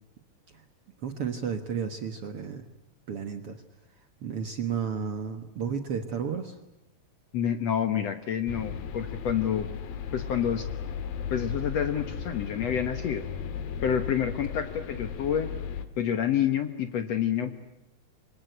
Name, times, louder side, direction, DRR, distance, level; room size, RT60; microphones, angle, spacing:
voice 1, 1.0-2.7 3.1-3.6 3.9-6.6 12.3-12.4, right 7 dB, 55° right, 7 dB, 1.8 m, -33 dB
voice 2, 7.3-9.7 10.1-10.7 11.3-13.2 13.8-15.5 16.0-17.5, left 9 dB, 60° left, 9 dB, 2.0 m, -28 dB
sound 1, 8.5-15.9, left 7 dB, 85° left, 3.3 m, -36 dB
28.0 x 24.5 x 8.1 m, 0.96 s
omnidirectional pair, 4.1 m